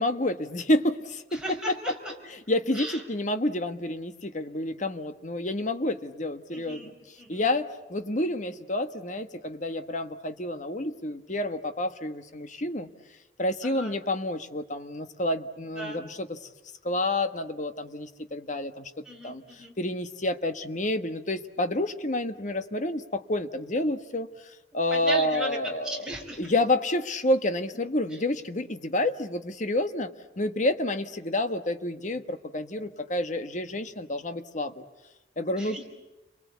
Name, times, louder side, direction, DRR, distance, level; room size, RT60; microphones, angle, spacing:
voice 1, 0.0-1.4 2.5-6.9 7.3-12.9 13.4-16.4 16.8-18.9 19.2-19.4 19.8-24.3 24.7-26.0 26.4-30.1 30.4-34.8 35.4-35.9, left 1 dB, 40° left, 8 dB, 1.4 m, -29 dB
voice 2, 1.3-2.1 2.7-3.0 6.5-7.5 13.6-13.9 15.7-16.0 19.0-19.7 24.9-25.6 25.8-26.5 28.1-28.2 35.6-35.9, right 1 dB, 5° right, -1 dB, 4.9 m, -37 dB
30.0 x 23.5 x 8.3 m, 1.0 s
head